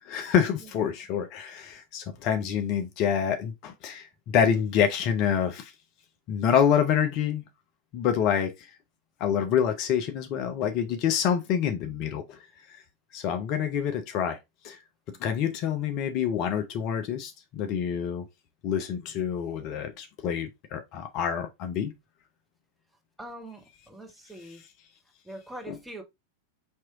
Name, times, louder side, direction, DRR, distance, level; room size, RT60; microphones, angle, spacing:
voice 1, 0.0-5.7 6.3-7.4 7.9-8.5 9.2-12.4 12.7-12.8 13.1-14.4 14.6-14.8 15.2-18.3 18.6-21.9 25.7-25.8, left 8 dB, 40° left, 0.7 m, -27 dB
voice 2, 23.2-24.6 25.3-26.0, right 1 dB, 5° right, 1.1 m, -43 dB
4.5 x 3.0 x 3.5 m
figure-of-eight pair, 90°, 0 cm